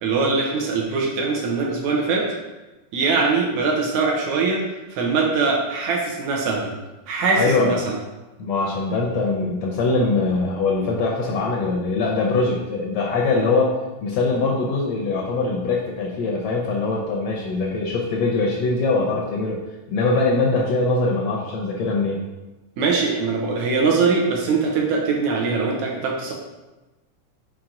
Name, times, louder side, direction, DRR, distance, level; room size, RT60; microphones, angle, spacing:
voice 1, 0.0-2.3 2.9-4.6 4.9-6.7 7.1-8.0 22.8-26.3, right 4 dB, 75° right, -1 dB, 2.2 m, -22 dB
voice 2, 7.4-7.7 8.4-13.8 14.0-19.6 19.9-22.2, left 3 dB, 70° left, -2 dB, 1.7 m, -22 dB
6.0 x 4.6 x 3.8 m, 1.1 s
omnidirectional pair, 3.6 m